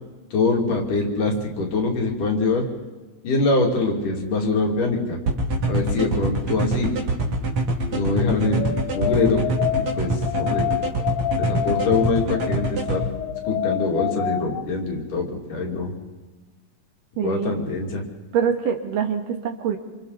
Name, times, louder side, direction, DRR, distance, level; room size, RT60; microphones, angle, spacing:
voice 1, 0.3-2.7 3.2-5.2 5.7-6.9 7.9-9.4 9.8-10.7 11.4-13.0 13.5-15.9 17.2-18.0, left 3 dB, 65° left, 0 dB, 4.3 m, -23 dB
sound 1, 5.3-13.0, right 2 dB, 50° right, 3.8 m, -24 dB
sound 2, 5.5-6.5 6.8-14.6, left 13 dB, 80° left, 2.6 m, -29 dB
voice 2, 17.2-17.6 18.3-19.8, right 7 dB, 70° right, 4 dB, 3.2 m, -24 dB
28.0 x 27.0 x 4.2 m, 1.3 s
omnidirectional pair, 4.1 m